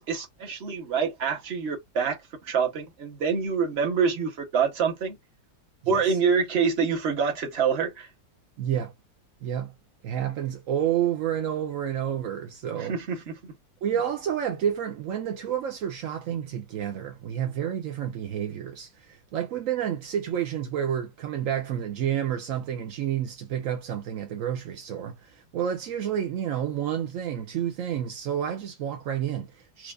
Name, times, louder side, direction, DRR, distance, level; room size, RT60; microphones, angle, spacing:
voice 1, 0.0-2.2 2.4-5.2 5.9-8.1 12.8-13.5, right 6 dB, 40° right, 1.1 m, -26 dB
voice 2, 8.6-8.9 9.4-9.7 10.0-13.0 13.8-29.9, right 9 dB, 70° right, 0.7 m, -30 dB
4.5 x 2.4 x 2.4 m
omnidirectional pair, 2.0 m